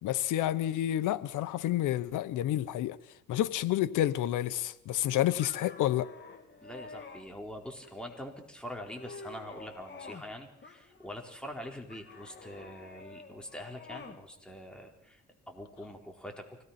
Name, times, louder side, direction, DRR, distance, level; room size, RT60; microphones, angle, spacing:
voice 1, 0.0-3.0 3.3-6.1, left 13 dB, 85° left, 1.0 m, -29 dB
sound 1, 5.4-7.3 7.8-8.3 8.7-10.3 10.6-11.3 11.9-14.2, left 4 dB, 35° left, 2.8 m, -49 dB
voice 2, 6.6-16.6, equal, 5° left, 4.2 m, -44 dB
25.0 x 18.0 x 5.9 m
cardioid pair, 90°, 30 cm